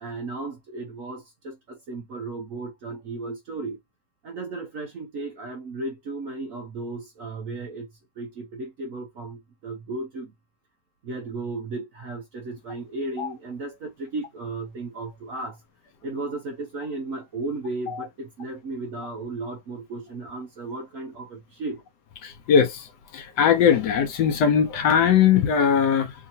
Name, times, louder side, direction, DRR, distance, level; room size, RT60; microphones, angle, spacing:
voice 1, 0.0-3.8 4.2-7.9 8.2-10.3 11.0-15.6 16.0-21.8, right 3 dB, 60° right, 0.9 m, -35 dB
voice 2, 22.2-22.9 23.1-26.1, left 7 dB, 70° left, 1.1 m, -20 dB
3.6 x 2.8 x 2.7 m
omnidirectional pair, 2.1 m